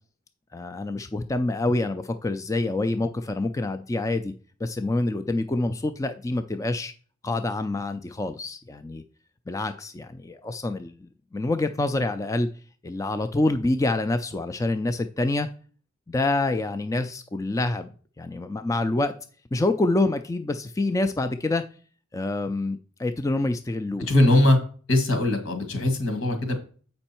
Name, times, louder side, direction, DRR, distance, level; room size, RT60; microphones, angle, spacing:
voice 1, 0.5-4.3 4.6-6.9 7.2-9.0 9.5-12.5 12.8-15.5 16.1-17.9 18.2-19.1 19.5-21.6 22.1-24.1, left 2 dB, 15° left, 9 dB, 0.3 m, -26 dB
voice 2, 24.0-24.6 24.9-26.5, left 1 dB, 80° left, 6 dB, 2.0 m, -21 dB
7.9 x 5.3 x 4.3 m, 0.41 s
head